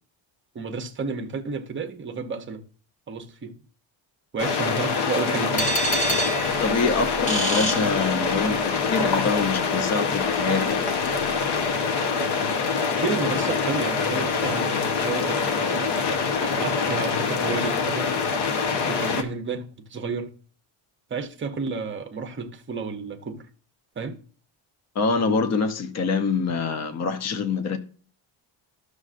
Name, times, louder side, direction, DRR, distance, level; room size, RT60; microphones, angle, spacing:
voice 1, 0.5-2.6 3.1-3.5 4.3-5.7 13.0-15.9 16.4-18.2 18.8-20.3 21.1-23.4 24.0-24.2, right 4 dB, 25° right, 0.7 m, -31 dB
sound 1, 4.4-19.2, left 5 dB, 55° left, 1.0 m, -25 dB
sound 2, 5.6-8.6, right 1 dB, 15° left, 1.0 m, -28 dB
voice 2, 6.6-10.8 24.9-27.8, left 4 dB, 35° left, 0.7 m, -25 dB
12.5 x 6.4 x 2.5 m
cardioid pair, 175°, 49 cm